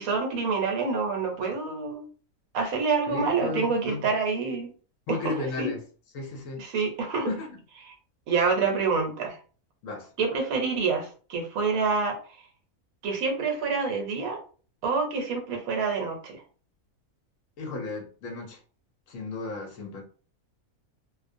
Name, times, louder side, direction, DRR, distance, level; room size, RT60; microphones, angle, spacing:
voice 1, 0.0-2.0 2.5-4.7 5.1-5.7 6.6-7.3 7.8-7.9 8.3-9.4 10.2-12.2 13.0-14.4 14.8-16.4, right 4 dB, 75° right, 3 dB, 1.1 m, -27 dB
voice 2, 3.1-4.1 5.1-5.8 6.1-6.6 7.3-7.5 9.8-10.1 17.6-18.6 19.1-20.0, left 3 dB, 70° left, 2 dB, 0.9 m, -34 dB
2.4 x 2.1 x 2.5 m, 0.40 s
omnidirectional pair, 1.6 m